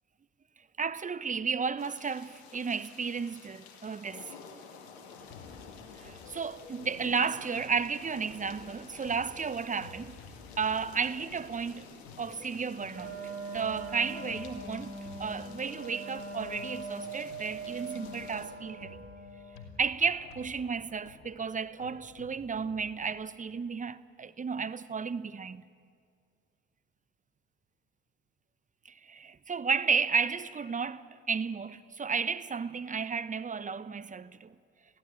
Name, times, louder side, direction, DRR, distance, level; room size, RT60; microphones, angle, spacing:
voice 1, 0.8-4.3 6.0-10.2 10.6-13.2 13.5-14.9 15.2-19.0 19.8-25.6 28.8-34.5, right 5 dB, 25° right, 0.9 m, -33 dB
sound 1, 1.8-18.5, left 6 dB, 90° left, 2.2 m, -51 dB
sound 2, 5.2-23.1, left 4 dB, 70° left, 2.6 m, -53 dB
Wind instrument woodwind instrument, 12.9-19.5, right 3 dB, 40° right, 7.4 m, -42 dB
22.0 x 16.0 x 9.0 m
hypercardioid pair, 65°, 32 cm